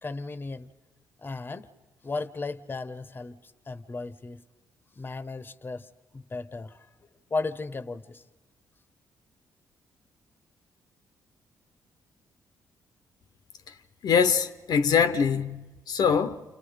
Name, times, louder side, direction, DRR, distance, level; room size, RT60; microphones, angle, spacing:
voice 1, 0.0-0.7 1.2-1.7 2.0-4.4 5.0-6.9 7.3-8.2, left 3 dB, 30° left, 1.0 m, -35 dB
voice 2, 14.0-16.4, left 6 dB, 70° left, 1.0 m, -24 dB
29.0 x 29.0 x 5.1 m
cardioid pair, 75°, 7 cm